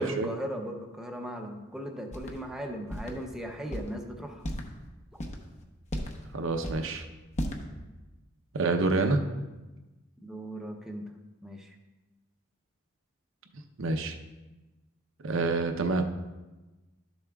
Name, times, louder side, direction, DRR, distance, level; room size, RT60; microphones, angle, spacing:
voice 1, 0.0-4.4 10.2-11.2 11.4-11.7, equal, 5° right, 2 dB, 0.6 m, -38 dB
sound 1, 2.1-2.4 2.9-3.1 3.7-3.9 4.4-4.7 5.1-5.4 5.9-6.2 6.6-6.9 7.4-7.6, equal, 35° left, 0.9 m, -34 dB
voice 2, 6.3-7.0 8.5-9.2 13.8-14.2 15.2-16.0, right 3 dB, 75° right, 5 dB, 0.7 m, -27 dB
12.0 x 7.0 x 2.3 m, 1.1 s
head